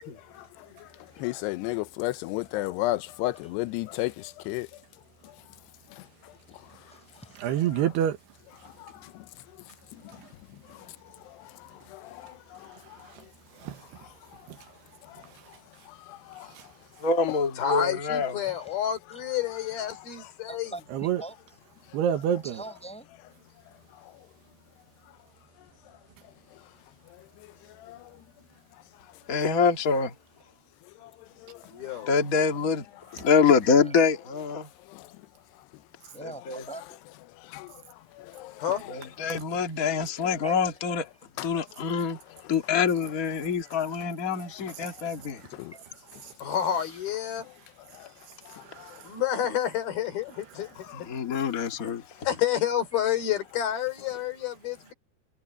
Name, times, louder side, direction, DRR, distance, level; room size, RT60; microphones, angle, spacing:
voice 1, 1.2-4.7 8.8-9.2 11.9-12.7 15.1-15.2 16.1-16.5 27.8-28.0 31.0-31.1 31.4-31.6 34.9-35.1 37.5-37.7 38.2-38.6 41.4-41.5 45.5-45.7 47.9-48.1 48.5-49.0 50.9-51.0, left 18 dB, 90° left, 2.9 m, -33 dB
voice 2, 6.8-7.6 8.9-9.0 18.4-18.8 19.1-19.2 20.5-21.4 22.4-23.1 33.6-34.0 36.1-37.1 40.4-40.6 45.7-45.8 52.9-53.0, right 2 dB, ahead, 5.0 m, -43 dB
voice 3, 7.4-8.2 13.6-13.8 14.5-14.6 20.9-21.2 21.9-22.6 48.7-49.0, right 10 dB, 85° right, 3.5 m, -27 dB
voice 4, 17.0-18.3 29.3-30.1 32.1-32.8 33.1-34.7 36.5-36.6 38.9-41.0 41.4-42.2 42.5-45.4 50.9-52.0, left 5 dB, 35° left, 1.5 m, -25 dB
voice 5, 17.6-20.7 31.7-32.1 38.6-38.8 46.4-47.5 49.0-50.7 51.8-51.9 52.2-54.9, left 10 dB, 65° left, 5.1 m, -29 dB
omnidirectional pair, 4.7 m